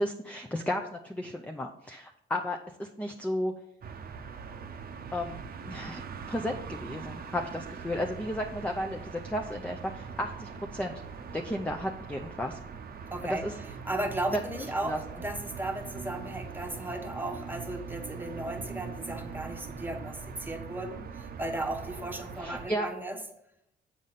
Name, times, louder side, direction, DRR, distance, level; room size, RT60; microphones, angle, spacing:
voice 1, 0.0-3.5 5.1-5.4 5.6-6.0 6.3-11.0 11.3-12.6 13.2-13.5 14.3-15.0 22.4-22.9, left 1 dB, 5° left, 4 dB, 0.5 m, -33 dB
sound 1, 3.8-22.7, right 6 dB, 50° right, 0.7 m, -42 dB
voice 2, 13.1-13.4 13.8-23.2, right 1 dB, 10° right, 3 dB, 1.1 m, -35 dB
7.3 x 5.2 x 4.0 m, 0.77 s
cardioid pair, 90°, 20 cm